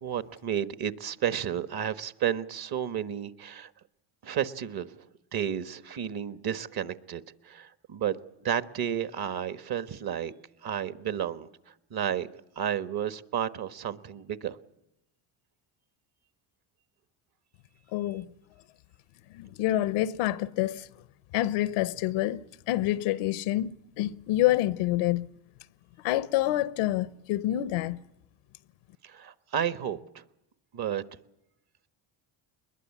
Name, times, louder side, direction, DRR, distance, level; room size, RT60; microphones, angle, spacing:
voice 1, 0.0-3.7 4.2-5.1 5.3-10.3 10.6-11.5 11.9-12.3 12.6-14.6 29.0-30.2 30.7-31.0, right 9 dB, 45° right, 1.4 m, -32 dB
voice 2, 17.9-18.3 19.3-20.9 21.3-25.3 26.0-28.0, left 14 dB, 80° left, 0.9 m, -27 dB
21.5 x 21.5 x 8.5 m
supercardioid pair, 80°, 49 cm